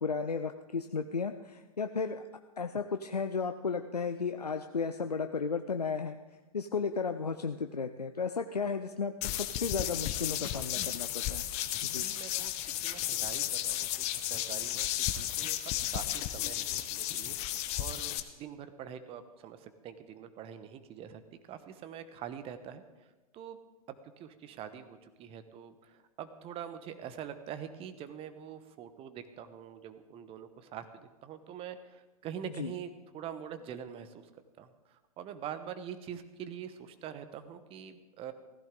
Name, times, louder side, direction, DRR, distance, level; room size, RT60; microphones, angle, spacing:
voice 1, 0.0-2.2 2.6-6.2 6.5-11.5 11.8-12.1 32.6-32.7, left 5 dB, 90° left, 7 dB, 0.6 m, -34 dB
sound 1, 9.2-18.2, left 13 dB, 35° left, 0.9 m, -34 dB
voice 2, 12.0-12.5 12.8-14.9 15.2-21.2 21.5-22.8 23.3-23.6 24.2-34.1 34.6-34.7 35.2-38.3, right 9 dB, 30° right, 10 dB, 1.1 m, -44 dB
16.5 x 15.0 x 3.8 m, 1.1 s
figure-of-eight pair, 105°, 20 cm